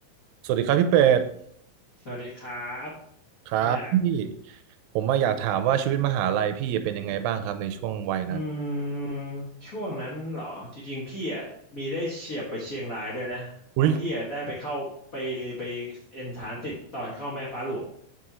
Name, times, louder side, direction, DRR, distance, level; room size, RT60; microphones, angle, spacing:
voice 1, 0.4-1.3 3.5-4.6 5.0-8.4 13.8-14.0, right 10 dB, 90° right, 2.3 m, -24 dB
voice 2, 2.0-2.9 3.6-3.9 8.3-13.5 13.9-17.8, equal, 45° left, 1.1 m, -33 dB
7.3 x 4.9 x 4.1 m
omnidirectional pair, 4.0 m